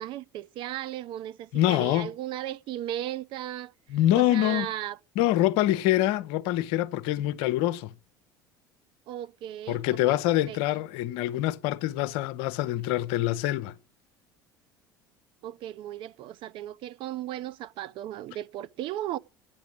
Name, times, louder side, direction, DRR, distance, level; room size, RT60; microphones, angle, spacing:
voice 1, 0.0-3.7 4.1-5.0 9.1-10.2 10.5-10.8 15.4-19.2, right 12 dB, 50° right, 0.5 m, -36 dB
voice 2, 1.5-2.1 3.9-4.7 5.2-7.9 9.7-13.7, left 14 dB, 60° left, 0.6 m, -25 dB
8.6 x 7.0 x 8.5 m
figure-of-eight pair, 65°, 11 cm